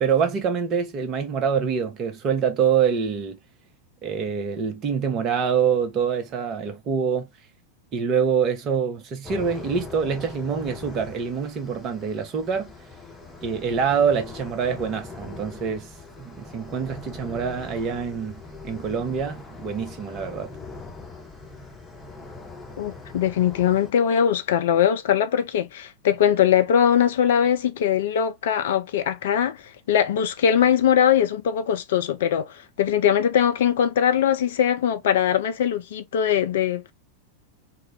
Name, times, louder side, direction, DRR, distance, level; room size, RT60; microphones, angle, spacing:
voice 1, 0.0-3.4 4.0-7.3 7.9-12.7 13.4-15.9 16.2-20.5, right 6 dB, 35° right, 0.7 m, -25 dB
sound 1, 9.2-23.9, left 3 dB, 10° left, 0.9 m, -41 dB
voice 2, 22.8-29.6 29.9-36.9, left 9 dB, 55° left, 0.4 m, -21 dB
2.3 x 2.1 x 3.3 m
figure-of-eight pair, 90°, 0 cm